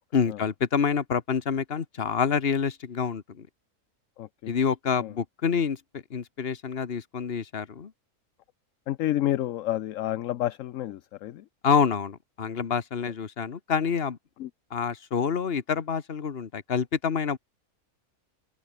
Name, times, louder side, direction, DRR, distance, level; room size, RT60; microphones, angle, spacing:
voice 1, 0.1-3.5 4.5-7.9 11.6-14.2 14.7-17.4, left 6 dB, 45° left, 1.4 m, -27 dB
voice 2, 4.2-4.5 5.0-5.1 8.9-11.4 13.0-13.1 14.4-14.5, left 13 dB, 65° left, 1.0 m, -30 dB
open air
omnidirectional pair, 1.6 m